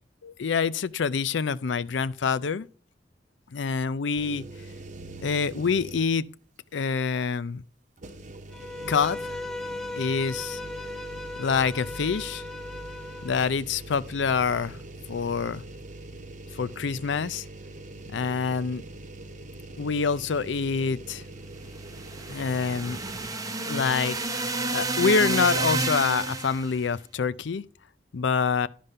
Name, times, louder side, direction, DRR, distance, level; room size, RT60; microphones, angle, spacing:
voice 1, 0.2-2.7 3.5-4.4 5.2-6.3 6.7-7.6 8.9-9.2 9.9-10.6 11.4-12.4 13.2-14.8 15.1-15.6 16.5-17.5 18.1-18.8 19.8-21.2 22.3-23.0 23.6-24.4 24.7-27.6 28.1-28.7, left 5 dB, 85° left, 0.5 m, -26 dB
sound 1, 4.1-6.3 6.7-6.8 8.0-23.3, right 2 dB, 45° right, 0.9 m, -43 dB
Bowed string instrument, 8.5-13.5, left 2 dB, ahead, 0.5 m, -37 dB
sound 2, 21.8-26.7, right 3 dB, 20° right, 0.8 m, -30 dB
11.5 x 5.3 x 5.4 m
head